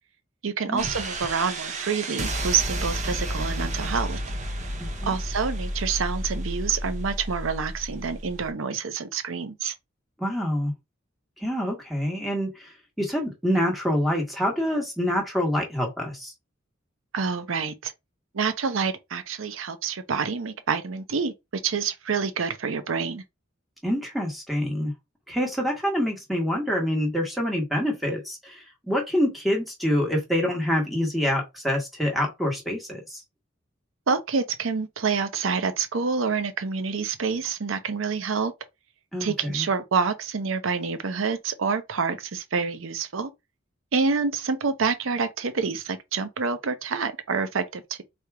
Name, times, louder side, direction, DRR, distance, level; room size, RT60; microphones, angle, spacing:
voice 1, 0.4-4.2 5.0-9.7 17.1-17.9 18.3-23.2 34.1-38.5 39.2-43.3 43.9-48.0, right 5 dB, 80° right, 0.6 m, -27 dB
sound 1, 0.8-8.5, right 1 dB, 35° right, 0.8 m, -31 dB
voice 2, 10.2-10.7 11.4-12.7 13.0-16.3 23.8-24.9 25.3-33.2 39.1-39.7, equal, ahead, 1.4 m, -26 dB
3.4 x 2.8 x 4.7 m
head